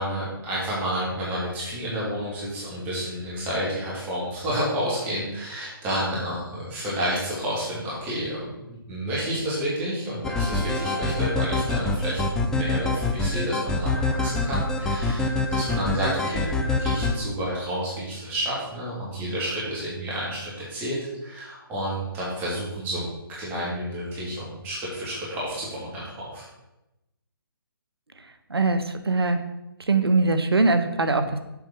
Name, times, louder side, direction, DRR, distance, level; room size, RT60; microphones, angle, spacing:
voice 1, 0.0-23.0 23.3-26.4, equal, 15° right, -7 dB, 2.6 m, -30 dB
sound 1, 10.2-17.1, left 2 dB, 5° left, 0.4 m, -25 dB
voice 2, 28.5-29.4 29.8-31.4, right 3 dB, 85° right, 9 dB, 1.0 m, -22 dB
7.3 x 6.0 x 5.9 m, 0.94 s
figure-of-eight pair, 150°, 13 cm